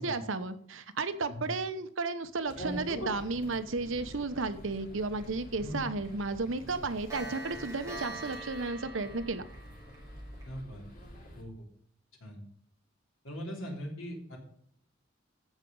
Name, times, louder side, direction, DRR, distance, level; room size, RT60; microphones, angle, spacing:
voice 1, 0.0-9.4, right 3 dB, 75° right, 11 dB, 0.9 m, -33 dB
sound 1, 2.4-11.4, equal, 45° left, 2.9 m, -49 dB
voice 2, 2.6-3.1 5.6-5.8 10.4-10.8 11.3-11.5 12.2-12.4 13.2-14.4, equal, 85° left, 0 dB, 3.4 m, -39 dB
Clock, 5.2-5.3 5.6-5.8 6.0-6.1 6.5-10.5, right 2 dB, 15° right, 3.5 m, -44 dB
15.0 x 5.1 x 5.4 m, 0.67 s
head